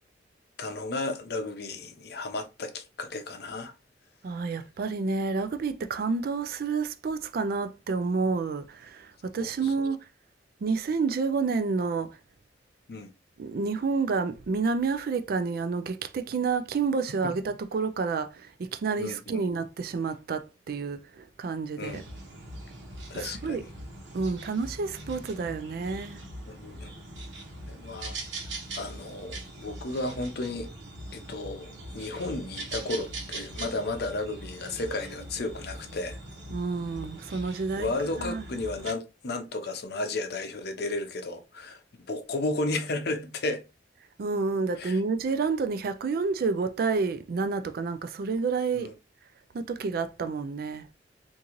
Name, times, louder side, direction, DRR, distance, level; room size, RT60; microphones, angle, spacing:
voice 1, 0.6-3.7 9.4-9.9 12.9-13.1 17.2-17.3 19.0-19.4 21.8-22.0 23.1-23.7 26.5-26.9 27.7-28.2 28.8-30.7 31.1-36.2 37.8-41.8 42.1-43.6 44.8-45.0 48.7-48.9, left 2 dB, 60° left, 0.6 m, -33 dB
voice 2, 4.2-10.0 10.6-12.2 13.4-22.0 23.1-23.6 24.1-26.2 36.5-37.9 38.2-38.4 44.2-48.9 49.5-50.9, right 4 dB, 55° right, 0.3 m, -29 dB
sound 1, 21.8-38.9, right 2 dB, 90° right, 1.0 m, -41 dB
3.7 x 2.6 x 2.9 m
head